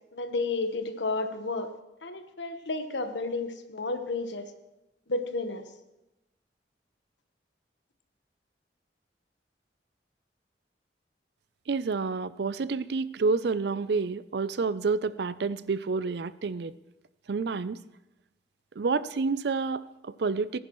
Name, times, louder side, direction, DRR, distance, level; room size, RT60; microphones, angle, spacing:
voice 1, 0.1-1.7 2.0-4.5 5.1-5.6, left 3 dB, 90° left, 7 dB, 1.1 m, -31 dB
voice 2, 11.7-16.7 17.3-17.8 18.8-20.6, right 4 dB, 65° right, 15 dB, 0.4 m, -29 dB
18.5 x 10.0 x 3.1 m, 0.95 s
head